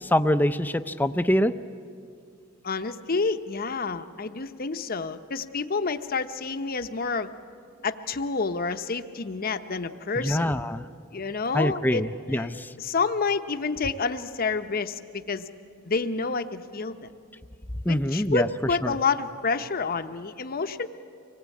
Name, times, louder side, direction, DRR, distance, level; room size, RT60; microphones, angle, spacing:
voice 1, 0.0-1.5 10.2-10.9 11.5-12.7 17.9-18.5 18.8-18.9, equal, 10° left, 11 dB, 0.5 m, -24 dB
voice 2, 2.6-7.3 7.8-10.5 11.1-12.0 12.3-15.5 15.8-17.0 17.9-20.9, left 4 dB, 50° left, 8 dB, 0.8 m, -29 dB
25.0 x 18.5 x 8.4 m, 2.4 s
head